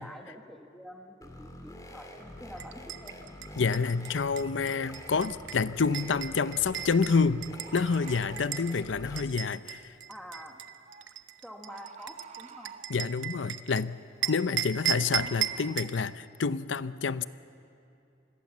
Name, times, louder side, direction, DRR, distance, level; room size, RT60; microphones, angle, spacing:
voice 1, 0.0-3.2 4.9-5.0 10.1-10.6 11.4-12.7 14.2-15.3, equal, ahead, 2 dB, 1.7 m, -47 dB
sound 1, 1.2-9.2, left 1 dB, 20° left, 2.6 m, -46 dB
sound 2, 2.6-8.7 9.2-13.8 14.2-16.0, right 11 dB, 80° right, 0.9 m, -36 dB
voice 2, 3.6-7.5 7.7-9.9 12.9-14.0 14.3-17.2, left 5 dB, 75° left, 15 dB, 0.6 m, -28 dB
Bird, 6.0-6.1 7.6-8.6 10.9-11.1 11.7-13.0 15.0-15.9, right 6 dB, 35° right, 0.6 m, -49 dB
27.0 x 21.0 x 7.4 m, 2.7 s
head